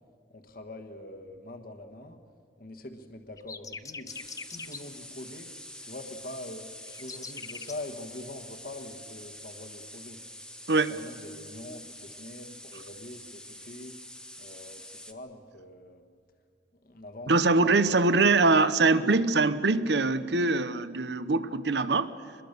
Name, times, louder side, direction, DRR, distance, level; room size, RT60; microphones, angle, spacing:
voice 1, 0.3-2.2 2.6-4.1 4.5-5.5 5.8-6.7 7.0-10.2 10.8-13.9 14.4-16.0 16.8-17.8, left 1 dB, 55° left, 6 dB, 1.4 m, -44 dB
sound 1, 3.4-4.8 6.9-7.8, left 5 dB, 20° left, 0.6 m, -41 dB
sound 2, 4.1-15.1, left 1 dB, 5° left, 1.0 m, -46 dB
voice 2, 17.3-22.1, right 3 dB, 70° right, 14 dB, 0.9 m, -23 dB
24.5 x 21.0 x 6.7 m, 2.3 s
head